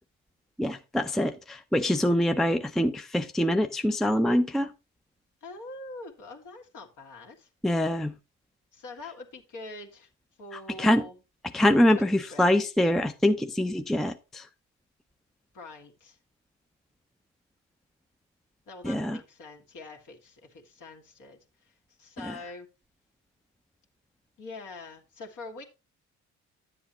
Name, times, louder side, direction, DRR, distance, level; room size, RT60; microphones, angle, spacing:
voice 1, 0.6-4.7 7.6-8.1 10.8-11.0 11.5-14.5 18.8-19.2 22.3-22.4, left 1 dB, ahead, 0.5 m, -24 dB
voice 2, 5.4-7.5 8.7-10.1 10.4-11.2 11.9-12.5 15.5-16.2 18.7-22.7 24.4-25.6, left 2 dB, 65° left, 1.9 m, -44 dB
10.5 x 7.8 x 3.0 m
supercardioid pair, 60°, 34 cm